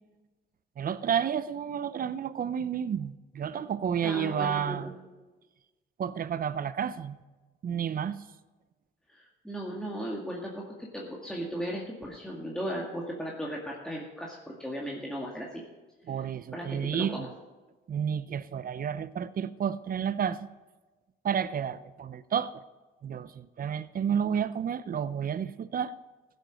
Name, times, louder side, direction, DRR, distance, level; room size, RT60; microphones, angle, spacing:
voice 1, 0.8-4.9 6.0-7.2 7.6-8.2 16.1-17.3 17.9-20.5 21.2-22.6 23.0-25.9, right 8 dB, 45° right, 15 dB, 0.7 m, -31 dB
voice 2, 4.0-4.9 9.1-15.6 16.5-17.3, equal, 5° left, -3 dB, 2.1 m, -36 dB
15.5 x 7.9 x 6.4 m, 1.2 s
cardioid pair, 90°, 20 cm